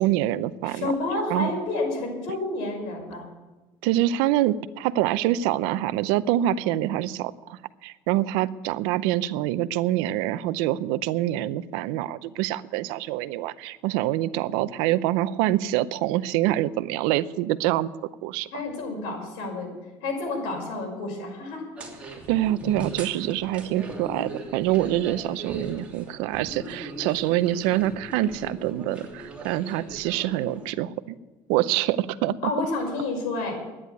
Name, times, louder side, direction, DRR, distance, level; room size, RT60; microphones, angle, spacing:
voice 1, 0.0-0.9 1.3-1.5 3.8-17.9 18.2-18.5 22.3-31.2 31.5-32.3, right 14 dB, 85° right, 15 dB, 0.6 m, -25 dB
voice 2, 0.6-3.2 18.5-19.7 20.0-21.8 32.4-33.5, left 2 dB, 80° left, 1 dB, 5.7 m, -30 dB
sound 1, 21.8-30.7, right 1 dB, 15° right, 3.0 m, -39 dB
11.0 x 10.0 x 9.5 m, 1.1 s
cardioid pair, 145°, 8 cm